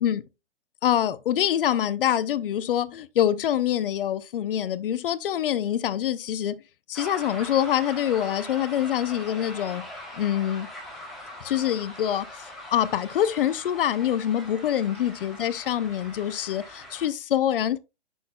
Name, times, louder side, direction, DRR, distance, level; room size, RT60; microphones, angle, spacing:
voice 1, 0.8-6.6 6.9-9.9 10.2-10.7 11.4-17.8, left 10 dB, 55° left, 0.6 m, -25 dB
sound 1, 6.9-17.1, left 1 dB, ahead, 1.8 m, -41 dB
7.1 x 6.3 x 2.2 m
hypercardioid pair, 130°, 33 cm